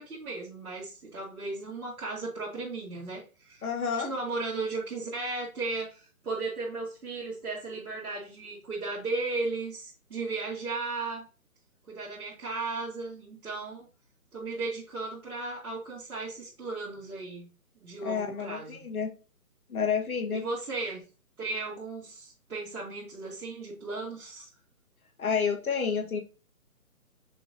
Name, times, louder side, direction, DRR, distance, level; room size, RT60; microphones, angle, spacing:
voice 1, 0.0-3.6 4.0-11.2 11.9-13.9 14.3-17.5 17.8-18.8 20.3-21.0 21.4-24.5, right 3 dB, 70° right, -7 dB, 2.1 m, -35 dB
voice 2, 3.6-4.1 18.0-19.1 19.7-20.4 25.2-26.2, left 6 dB, 70° left, 4 dB, 1.4 m, -29 dB
5.7 x 3.3 x 2.6 m, 0.34 s
hypercardioid pair, 165°, 45 cm